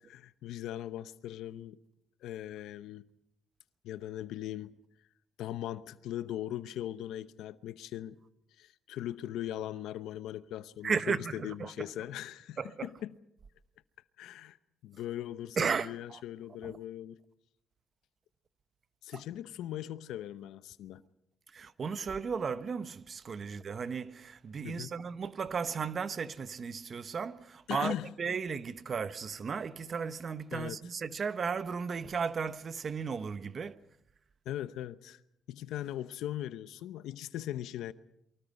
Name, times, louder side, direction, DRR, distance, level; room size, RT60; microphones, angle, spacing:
voice 1, 0.0-1.8 2.2-3.1 3.8-4.7 5.4-8.2 8.6-13.2 14.2-14.6 14.8-17.2 19.0-21.0 24.6-24.9 27.7-28.1 30.5-30.8 34.4-35.2 35.5-37.9, left 12 dB, 85° left, 0.8 m, -39 dB
voice 2, 10.8-11.9 12.6-12.9 15.6-16.2 16.6-16.8 21.5-33.8, right 6 dB, 45° right, 1.0 m, -35 dB
28.5 x 24.0 x 5.5 m
cardioid pair, 90°, 0 cm